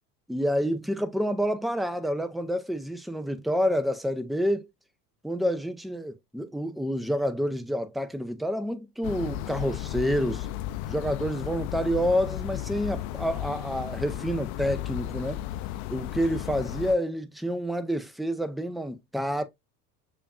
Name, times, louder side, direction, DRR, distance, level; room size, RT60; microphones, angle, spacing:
voice 1, 0.3-4.7 5.2-10.5 10.9-15.4 15.9-19.4, equal, ahead, 0.5 m, -28 dB
sound 1, 9.0-16.9, left 13 dB, 65° left, 0.5 m, -34 dB
6.7 x 2.5 x 2.3 m
hypercardioid pair, 80°, 48 cm